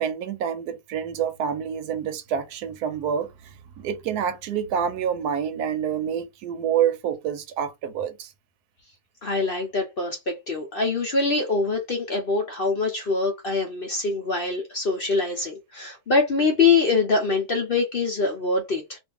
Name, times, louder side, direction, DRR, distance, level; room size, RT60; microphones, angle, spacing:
voice 1, 0.0-8.3, right 8 dB, 80° right, 1.2 m, -27 dB
voice 2, 9.2-19.0, left 4 dB, 50° left, 0.7 m, -24 dB
2.6 x 2.5 x 3.4 m
omnidirectional pair, 1.6 m